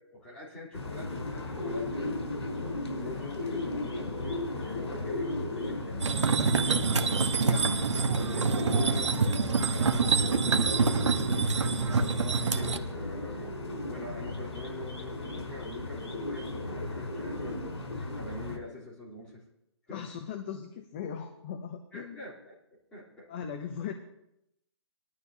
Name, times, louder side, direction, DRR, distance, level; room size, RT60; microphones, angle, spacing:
voice 1, 0.0-2.1 2.8-6.9 7.6-7.8 8.3-13.6 13.9-17.6 18.1-19.4 19.9-20.0 21.9-22.5 22.9-23.2, left 1 dB, 10° left, -8 dB, 3.5 m, -44 dB
sound 1, 0.7-18.6, left 2 dB, 80° left, 5.3 m, -36 dB
sound 2, 6.0-12.8, right 4 dB, 75° right, 1.2 m, -26 dB
voice 2, 7.4-7.8 19.9-22.2 23.3-23.9, left 8 dB, 25° left, 6 dB, 0.7 m, -38 dB
21.0 x 11.5 x 2.8 m, 0.83 s
hypercardioid pair, 165°, 15 cm